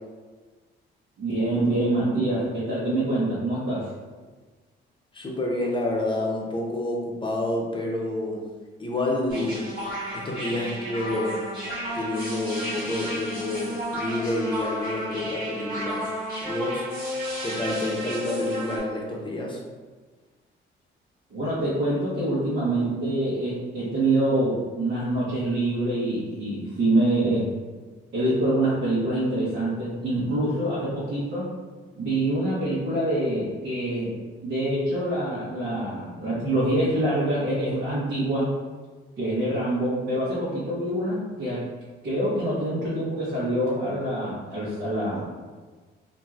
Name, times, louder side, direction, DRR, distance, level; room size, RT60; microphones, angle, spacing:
voice 1, 1.2-3.9 21.3-27.5 28.1-31.5 31.9-38.5 39.2-41.7 42.0-45.3, right 1 dB, 80° right, -10 dB, 1.0 m, -25 dB
voice 2, 5.1-8.4 8.8-9.7 10.1-11.4 11.9-16.1 16.4-16.9 17.4-19.6, left 1 dB, 25° left, -1 dB, 0.6 m, -29 dB
sound 1, 9.3-18.8, equal, 50° right, 1.3 m, -32 dB
2.9 x 2.5 x 2.3 m, 1.4 s
cardioid pair, 90°, 20 cm